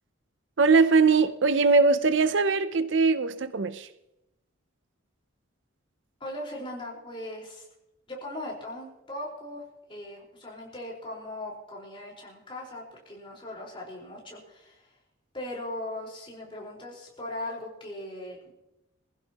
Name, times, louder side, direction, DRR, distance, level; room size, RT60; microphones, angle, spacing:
voice 1, 0.6-3.9, right 4 dB, 60° right, 0.6 m, -21 dB
voice 2, 6.2-7.7 8.1-9.6 9.9-14.9 15.3-18.5, left 1 dB, 25° left, 4.6 m, -39 dB
22.0 x 15.5 x 3.0 m
head